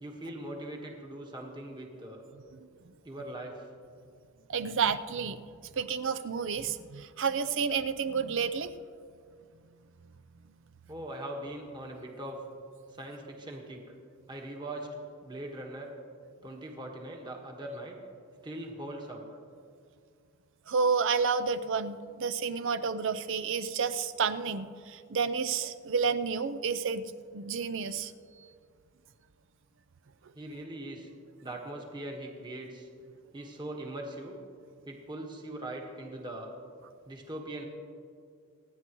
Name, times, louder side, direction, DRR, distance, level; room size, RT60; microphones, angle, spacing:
voice 1, 0.0-2.2 3.0-3.6 10.9-12.4 12.9-13.8 14.3-14.9 15.2-15.9 16.4-18.0 18.4-19.2 30.3-31.1 31.4-32.9 33.3-34.4 34.9-36.5 37.1-37.6, right 1 dB, 20° right, 0 dB, 1.4 m, -41 dB
voice 2, 2.5-2.9 4.5-5.4 5.8-8.8 20.7-28.1, right 5 dB, 60° right, 12 dB, 0.5 m, -30 dB
27.5 x 9.7 x 3.1 m, 2.2 s
head